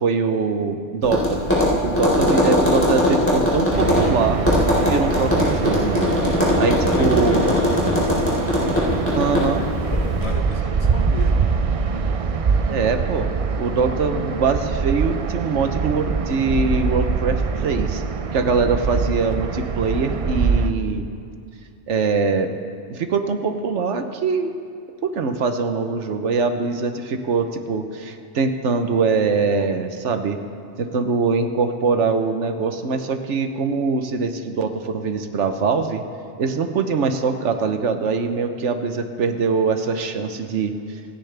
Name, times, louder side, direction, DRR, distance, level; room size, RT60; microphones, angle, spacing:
voice 1, 0.0-1.4 1.8-4.4 4.8-6.1 6.6-7.6 9.1-9.6 12.7-13.3 13.6-18.0 18.3-21.1 21.9-22.5 22.9-24.5 25.0-30.4 30.8-36.0 36.4-40.7, right 4 dB, 80° right, 7 dB, 1.2 m, -23 dB
Tap, 1.0-10.3, left 1 dB, 10° left, 4.1 m, -20 dB
sound 1, 3.7-20.7, right 5 dB, 50° right, 0.4 m, -24 dB
voice 2, 6.5-7.9 10.2-11.3, left 4 dB, 65° left, 4 dB, 1.4 m, -32 dB
26.5 x 10.5 x 3.4 m, 2.6 s
omnidirectional pair, 1.2 m